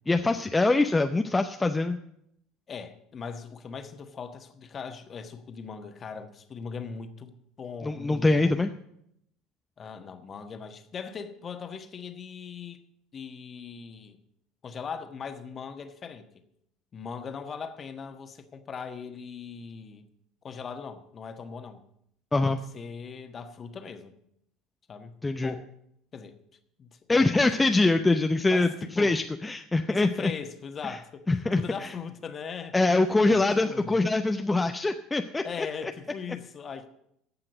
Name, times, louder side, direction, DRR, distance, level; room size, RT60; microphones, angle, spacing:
voice 1, 0.1-2.0 7.8-8.7 22.3-22.6 25.2-25.5 27.1-30.3 30.8-31.0 31.3-31.9 32.7-35.9, left 2 dB, 15° left, 0.7 m, -24 dB
voice 2, 2.7-8.7 9.8-12.8 13.1-14.2 14.6-16.3 16.9-20.0 20.4-21.8 22.5-24.2 24.9-25.2 25.4-25.7 26.1-26.3 26.8-27.9 28.5-29.2 29.9-31.3 31.5-32.7 33.2-33.9 35.4-36.9, left 6 dB, 35° left, 1.4 m, -40 dB
15.5 x 5.8 x 8.0 m
hypercardioid pair, 70°, 0 cm